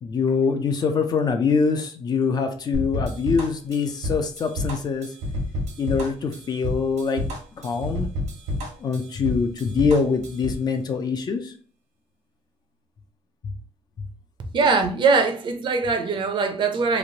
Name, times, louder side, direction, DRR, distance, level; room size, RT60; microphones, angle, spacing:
voice 1, 0.0-5.1 5.8-7.2 7.6-8.1 8.8-11.5 13.4-13.5, left 5 dB, 35° left, 0.4 m, -24 dB
sound 1, 2.7-10.6, left 1 dB, 85° right, 1.1 m, -29 dB
voice 2, 14.5-17.0, right 4 dB, 45° right, 0.6 m, -21 dB
3.1 x 2.4 x 2.7 m
cardioid pair, 145°, 12 cm